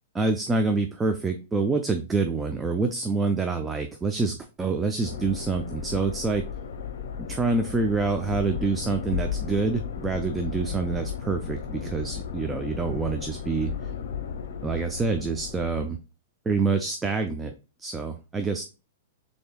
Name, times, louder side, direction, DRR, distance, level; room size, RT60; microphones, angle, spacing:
voice 1, 0.1-6.4 7.2-13.7 14.6-16.0 16.5-17.5 17.8-18.6, right 4 dB, 10° right, 6 dB, 0.4 m, -26 dB
sound 1, 5.0-16.0, left 7 dB, 70° left, 0.8 m, -35 dB
6.5 x 2.7 x 2.2 m, 0.32 s
hypercardioid pair, 160°, 0 cm